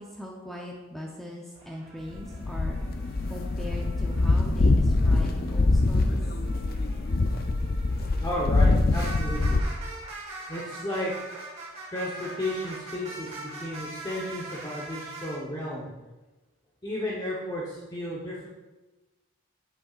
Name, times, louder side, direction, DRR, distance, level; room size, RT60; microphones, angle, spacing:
voice 1, 0.0-2.8 3.3-6.2, left 1 dB, ahead, -2 dB, 0.7 m, -40 dB
sound 1, 1.5-4.4 4.9-15.4, right 2 dB, 30° right, 1.5 m, -43 dB
sound 2, 2.1-9.6, left 2 dB, 45° left, 0.4 m, -24 dB
voice 2, 8.2-9.6 10.5-11.1 11.9-15.9 16.8-18.5, left 1 dB, 20° left, -6 dB, 1.0 m, -33 dB
8.8 x 7.9 x 2.4 m, 1.1 s
head